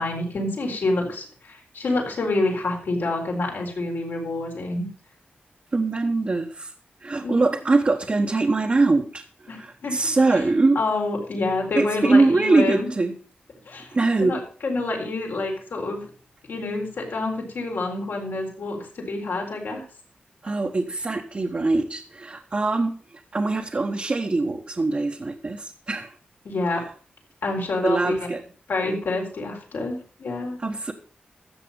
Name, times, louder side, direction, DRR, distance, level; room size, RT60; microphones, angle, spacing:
voice 1, 0.0-4.9 7.2-7.5 9.5-10.0 10.3-10.4 10.7-12.9 13.7-16.1 16.5-19.8 26.4-26.8 27.4-28.3 28.7-30.6, left 2 dB, 80° left, 1 dB, 4.1 m, -27 dB
voice 2, 5.7-6.7 7.0-10.8 11.8-13.1 13.9-14.4 20.4-23.0 23.3-26.1 27.8-28.4 30.6-30.9, right 3 dB, 40° right, 2 dB, 1.2 m, -22 dB
13.5 x 7.5 x 5.3 m, 0.41 s
cardioid pair, 70°, 4 cm